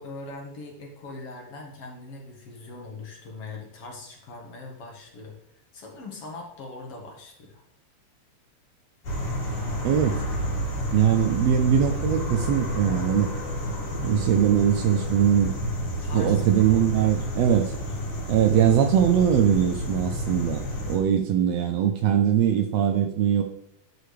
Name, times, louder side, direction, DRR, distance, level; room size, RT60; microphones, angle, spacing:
voice 1, 0.0-5.4 5.7-7.6 16.0-17.6, left 3 dB, 60° left, 0 dB, 2.4 m, -41 dB
sound 1, 9.0-21.0, equal, 80° left, 3.6 m, -30 dB
voice 2, 9.8-10.2 10.9-13.3 13.9-15.5 16.1-17.8 18.3-23.4, right 9 dB, 80° right, 5 dB, 1.6 m, -21 dB
11.5 x 5.1 x 3.3 m, 0.79 s
omnidirectional pair, 3.3 m